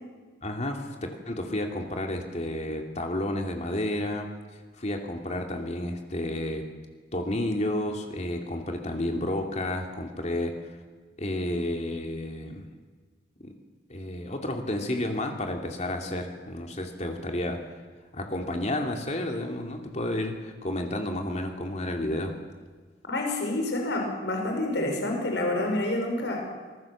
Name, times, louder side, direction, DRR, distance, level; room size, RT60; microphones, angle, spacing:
voice 1, 0.4-4.3 4.8-6.7 7.1-10.6 11.2-12.6 13.4-13.5 13.9-17.7 18.1-22.4, left 1 dB, 40° left, 3 dB, 2.8 m, -31 dB
voice 2, 23.1-26.4, left 1 dB, 75° left, 2 dB, 5.7 m, -28 dB
26.0 x 20.5 x 7.4 m, 1.4 s
head